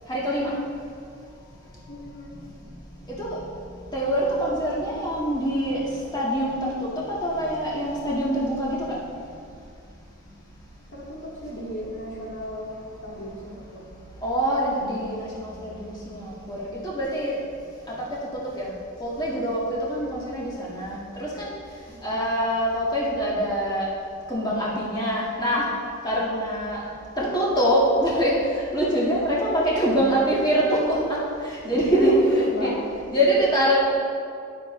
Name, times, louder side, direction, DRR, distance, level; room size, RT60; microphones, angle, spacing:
voice 1, 0.1-0.5 3.2-3.4 3.9-5.8 6.1-6.7 7.2-8.8 14.2-17.4 18.6-18.7 19.0-21.5 22.0-23.9 24.3-25.7 26.0-26.8 27.2-31.2 31.4-32.1 32.5-32.7 33.1-33.8, equal, 20° left, -7 dB, 2.0 m, -24 dB
voice 2, 1.9-2.4 10.9-13.8 21.9-22.3 26.5-26.6 31.9-32.8, equal, 60° left, -4 dB, 2.2 m, -35 dB
12.5 x 11.0 x 3.3 m, 2.4 s
head